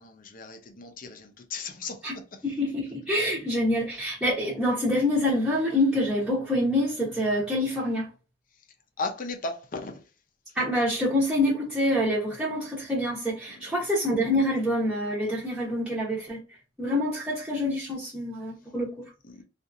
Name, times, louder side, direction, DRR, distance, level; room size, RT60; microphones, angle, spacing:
voice 1, 0.0-1.9 9.0-9.9, left 3 dB, 50° left, 0.6 m, -35 dB
voice 2, 2.4-8.1 10.5-16.4 16.8-18.9, left 1 dB, 5° right, 0.8 m, -26 dB
2.8 x 2.5 x 2.5 m
head